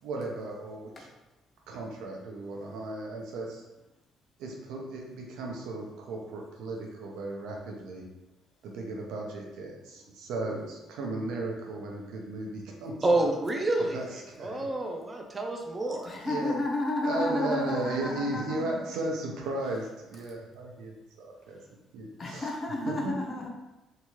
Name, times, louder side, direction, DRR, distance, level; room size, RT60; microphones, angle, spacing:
voice 1, 0.0-1.1 1.7-3.7 4.4-8.0 8.6-13.3 13.8-14.7 16.2-16.6 17.0-21.6 21.9-22.5 22.9-23.2, right 2 dB, 90° right, 0 dB, 0.6 m, -35 dB
voice 2, 13.0-14.1 14.4-16.2, right 2 dB, 20° right, 2 dB, 0.4 m, -28 dB
voice 3, 16.0-18.8 22.2-23.5, left 2 dB, 30° left, 0 dB, 0.5 m, -32 dB
2.8 x 2.3 x 3.0 m, 1.0 s
cardioid pair, 140°, 0 cm